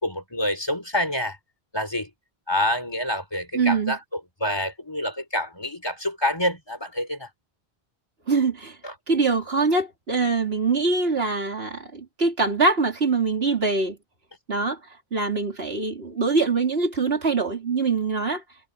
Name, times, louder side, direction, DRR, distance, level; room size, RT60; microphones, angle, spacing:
voice 1, 0.0-1.4 1.7-2.1 2.5-4.0 4.4-7.3 8.8-8.9, left 1 dB, 25° left, 4.4 m, -27 dB
voice 2, 3.5-4.0 8.3-8.8 9.1-14.0 14.5-14.8 15.1-18.4, right 4 dB, 75° right, 3.2 m, -23 dB
omnidirectional pair, 1.0 m